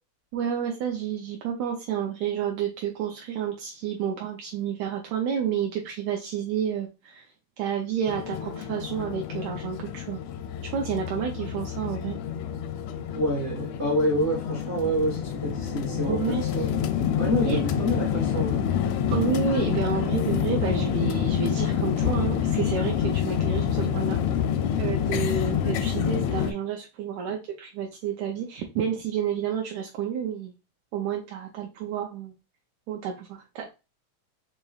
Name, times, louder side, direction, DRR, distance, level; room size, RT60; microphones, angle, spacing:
voice 1, 0.3-7.3 7.6-10.2 10.7-12.2 16.1-16.4 17.5-17.7 19.1-24.2 24.8-30.5 30.9-32.3 32.9-33.7, right 7 dB, 80° right, 1 dB, 1.9 m, -30 dB
sound 1, 8.1-26.5, left 8 dB, 80° left, 1.6 m, -27 dB
voice 2, 13.1-16.8 17.2-18.7, equal, 50° right, -4 dB, 0.8 m, -27 dB
5.2 x 2.9 x 2.3 m, 0.28 s
omnidirectional pair, 3.4 m